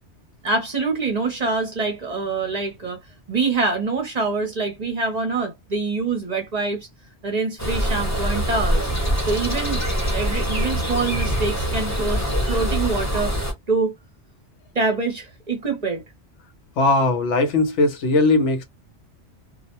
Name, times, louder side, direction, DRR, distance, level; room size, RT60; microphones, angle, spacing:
voice 1, 0.4-3.0 3.3-6.9 7.2-8.9 9.2-9.8 10.1-13.3 13.7-13.9 14.7-16.0, right 3 dB, 45° right, 0.7 m, -25 dB
sound 1, 7.6-13.5, equal, 15° left, 0.8 m, -24 dB
voice 2, 16.8-18.6, left 2 dB, 85° left, 1.1 m, -19 dB
2.4 x 2.1 x 2.8 m
omnidirectional pair, 1.2 m